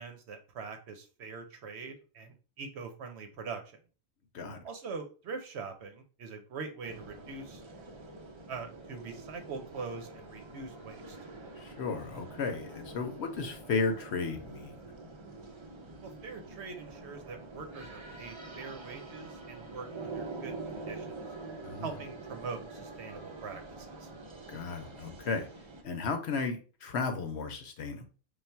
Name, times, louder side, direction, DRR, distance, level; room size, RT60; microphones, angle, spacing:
voice 1, 0.0-3.6 4.6-7.6 8.5-11.2 16.0-21.3 21.8-24.1, right 4 dB, 65° right, 6 dB, 0.9 m, -43 dB
sound 1, 6.8-25.8, right 3 dB, 40° right, 0.4 m, -46 dB
voice 2, 11.6-14.8 21.6-21.9 24.5-25.5 25.8-28.1, left 4 dB, 65° left, 6 dB, 0.9 m, -34 dB
3.3 x 2.4 x 4.4 m, 0.36 s
omnidirectional pair, 1.3 m